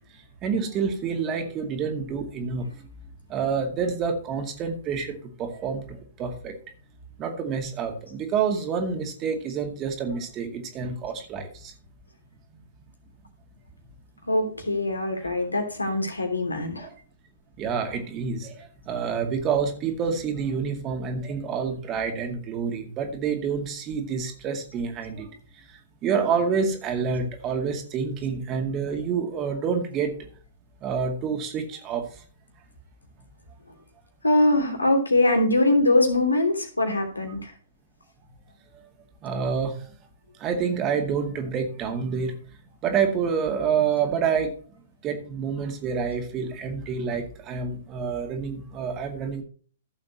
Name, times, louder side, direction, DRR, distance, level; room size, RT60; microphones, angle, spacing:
voice 1, 0.4-2.7 3.3-6.5 7.2-11.7 15.2-15.3 16.8-16.9 17.6-25.3 26.0-30.1 30.8-32.0 36.8-36.9 39.2-39.8 40.4-42.3 42.8-44.6 45.0-49.4, right 6 dB, 25° right, 4 dB, 2.1 m, -28 dB
voice 2, 14.3-16.9 34.2-37.5, left 2 dB, 80° left, 4 dB, 3.1 m, -22 dB
15.0 x 7.5 x 3.0 m, 0.42 s
figure-of-eight pair, 115°, 0 cm